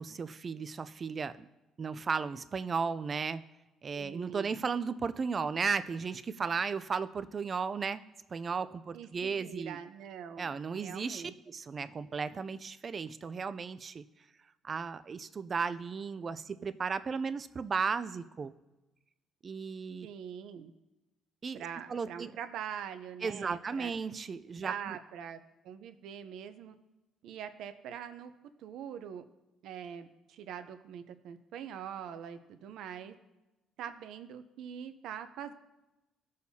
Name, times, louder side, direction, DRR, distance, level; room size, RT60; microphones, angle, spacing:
voice 1, 0.0-1.5 1.8-3.4 3.8-8.0 8.3-9.8 10.4-14.0 14.6-18.5 19.4-20.1 21.4-21.6 21.9-22.3 23.2-25.0, right 5 dB, 35° right, 13 dB, 0.4 m, -35 dB
voice 2, 3.9-4.5 8.9-11.3 20.0-20.7 21.5-23.9 24.6-25.4 25.6-26.7 27.2-28.3 28.6-29.2 29.6-33.1 33.8-35.5, right 8 dB, 75° right, 9 dB, 0.6 m, -43 dB
16.0 x 6.4 x 2.8 m, 1.0 s
cardioid pair, 125°, 0 cm